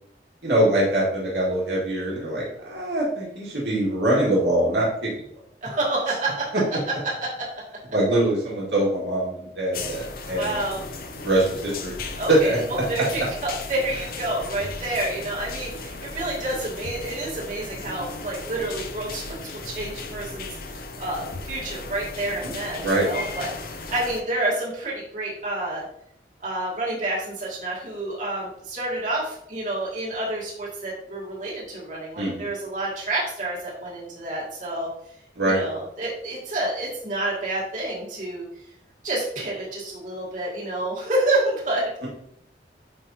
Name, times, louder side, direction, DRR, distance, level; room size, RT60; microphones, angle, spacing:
voice 1, 0.4-4.9 7.9-10.6 11.2-11.9 12.3-12.4 22.8-23.1 32.2-32.4 35.4-35.6, right 1 dB, 80° right, -6 dB, 2.1 m, -23 dB
voice 2, 5.6-6.5 7.2-7.5 10.3-10.8 12.2-19.4 19.6-25.8 26.4-34.9 35.4-38.4 39.0-41.9, right 2 dB, 45° right, -7 dB, 2.5 m, -29 dB
sound 1, 9.7-24.2, left 3 dB, 55° left, 0.7 m, -36 dB
9.9 x 3.5 x 2.8 m, 0.71 s
head